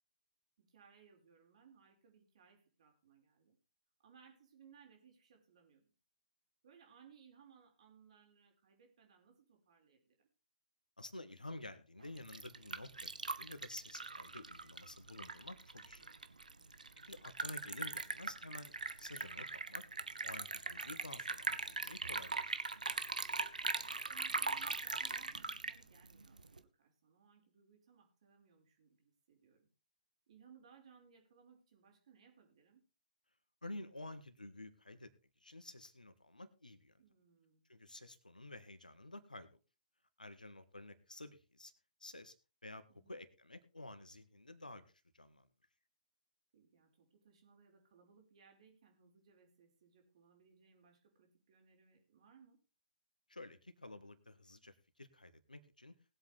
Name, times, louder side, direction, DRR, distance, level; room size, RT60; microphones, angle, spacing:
voice 1, 0.6-3.5 4.0-5.8 6.6-10.3 15.9-16.2 16.5-16.9 23.8-29.7 30.3-32.8 37.0-37.6 42.9-43.2 46.5-52.6, right 7 dB, 50° right, 2 dB, 5.1 m, -65 dB
voice 2, 11.0-16.1 16.7-19.9 20.2-22.5 33.6-35.1 35.4-37.0 37.7-39.6 40.2-41.7 42.0-42.4 42.6-45.5 53.3-56.0, left 2 dB, 80° left, 12 dB, 1.8 m, -51 dB
Liquid, 12.0-26.6, right 3 dB, 75° right, 1.0 m, -41 dB
20.0 x 8.1 x 3.6 m, 0.32 s
figure-of-eight pair, 125°, 4 cm